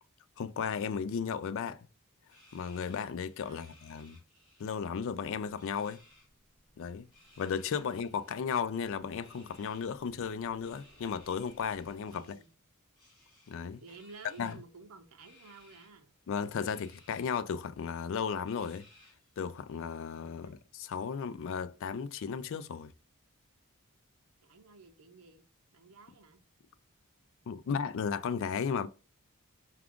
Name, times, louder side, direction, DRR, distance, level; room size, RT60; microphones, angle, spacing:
voice 1, 0.4-1.9 2.5-4.2 4.6-6.0 6.8-7.1 7.4-12.4 13.5-13.8 14.4-14.5 16.3-18.9 19.4-22.9 27.5-28.9, left 6 dB, 60° left, 0.3 m, -35 dB
sound 1, 2.3-4.8 5.1-6.3 7.0-8.4 9.1-9.9 10.6-12.5 12.9-14.6 15.2-15.9 16.6-17.3 17.7-17.8 18.5-19.3, left 2 dB, 20° left, 2.0 m, -62 dB
voice 2, 3.4-3.8 7.8-7.9 12.1-12.5 13.8-16.1 20.2-20.7 24.4-25.4 25.7-26.4, right 4 dB, 75° right, 0.7 m, -53 dB
sound 2, 6.2-12.2, equal, 40° left, 1.8 m, -64 dB
4.7 x 2.4 x 3.5 m
head